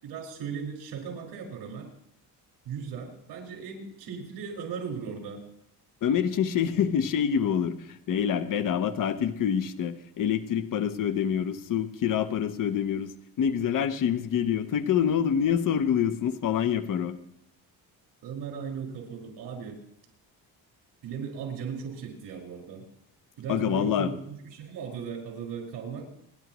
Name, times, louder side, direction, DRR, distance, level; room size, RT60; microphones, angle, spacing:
voice 1, 0.0-1.9 2.7-5.4 18.2-19.8 21.0-22.8 23.4-26.1, right 6 dB, 75° right, 1 dB, 5.3 m, -37 dB
voice 2, 6.0-13.1 13.4-17.2 23.5-24.1, left 8 dB, 55° left, 10 dB, 1.0 m, -26 dB
29.0 x 11.0 x 3.1 m, 0.75 s
cardioid pair, 145°, 39 cm